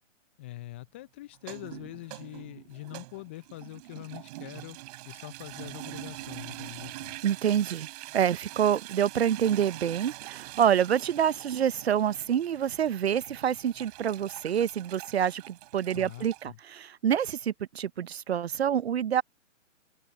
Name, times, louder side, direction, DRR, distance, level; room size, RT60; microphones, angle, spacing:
voice 1, 0.4-4.8 5.0-7.2 15.9-16.6, left 18 dB, 10° left, 0.5 m, -43 dB
sound 1, 1.3-16.5, right 21 dB, 30° right, 3.2 m, -44 dB
voice 2, 7.2-7.9 8.1-19.2, right 9 dB, 55° right, 0.7 m, -27 dB
figure-of-eight pair, 130°, 38 cm